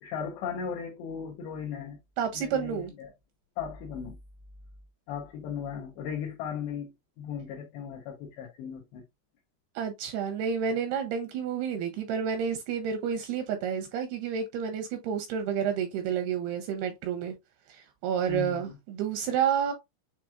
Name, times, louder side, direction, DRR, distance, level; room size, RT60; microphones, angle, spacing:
voice 1, 0.0-2.0 2.3-3.1 3.6-4.2 5.1-6.9 7.2-9.0 18.3-18.8, left 7 dB, 80° left, 3.0 m, -37 dB
voice 2, 2.2-2.9 9.8-17.3 17.7-19.7, right 7 dB, 85° right, 2.4 m, -30 dB
7.3 x 2.9 x 2.4 m
omnidirectional pair, 5.1 m